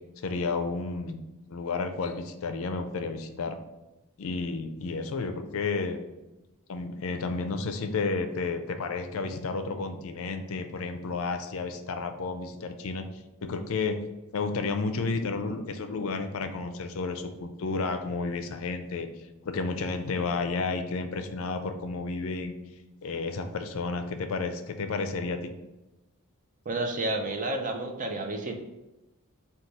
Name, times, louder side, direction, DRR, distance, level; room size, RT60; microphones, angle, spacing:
voice 1, 0.2-1.2 1.5-3.6 4.2-6.0 6.7-13.1 13.4-14.0 14.3-19.1 19.4-22.5 23.0-25.5, left 4 dB, 65° left, 7 dB, 0.4 m, -31 dB
voice 2, 26.7-28.6, right 2 dB, 35° right, 4 dB, 0.5 m, -30 dB
4.0 x 2.3 x 4.6 m, 0.99 s
head